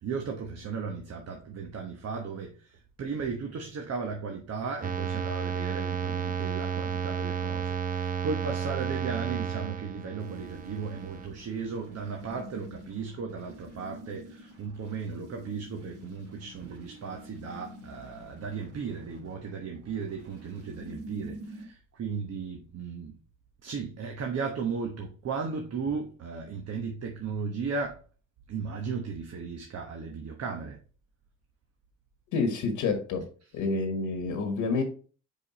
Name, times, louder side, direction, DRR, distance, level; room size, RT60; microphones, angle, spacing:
voice 1, 0.0-23.1 23.6-28.0 28.5-30.8, right 5 dB, 55° right, 1.2 m, -36 dB
sound 1, 4.8-11.3, right 7 dB, 30° right, 0.6 m, -32 dB
sound 2, 10.2-21.6, right 1 dB, 80° right, 2.4 m, -47 dB
voice 2, 32.3-33.2 33.5-34.8, left 4 dB, 85° left, 1.5 m, -28 dB
5.4 x 5.2 x 4.2 m
cardioid pair, 90°, 30 cm